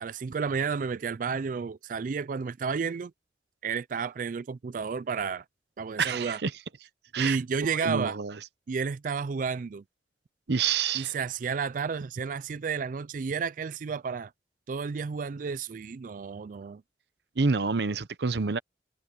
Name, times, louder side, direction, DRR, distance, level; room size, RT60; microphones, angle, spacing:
voice 1, 0.0-3.1 3.6-5.4 5.8-6.4 7.2-8.2 8.7-9.8 10.9-14.3 14.7-16.8, right 5 dB, 50° right, 0.4 m, -31 dB
voice 2, 6.0-6.5 7.1-7.4 7.6-8.4 10.5-11.1 17.4-18.6, right 5 dB, 65° right, 0.8 m, -28 dB
head